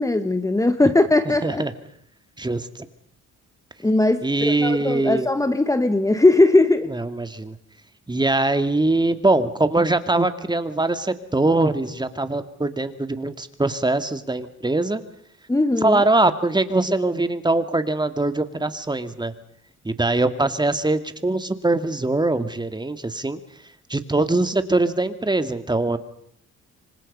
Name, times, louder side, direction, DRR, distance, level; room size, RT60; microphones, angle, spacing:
voice 1, 0.0-1.6 3.8-6.9 15.5-16.0, left 2 dB, 10° left, 10 dB, 1.4 m, -19 dB
voice 2, 1.3-1.7 2.4-2.9 4.2-5.3 6.9-7.6 8.1-15.0 15.8-19.3 19.8-23.4 23.9-26.0, right 2 dB, 15° right, 10 dB, 2.1 m, -22 dB
27.5 x 25.0 x 5.5 m, 0.69 s
cardioid pair, 90°, 30 cm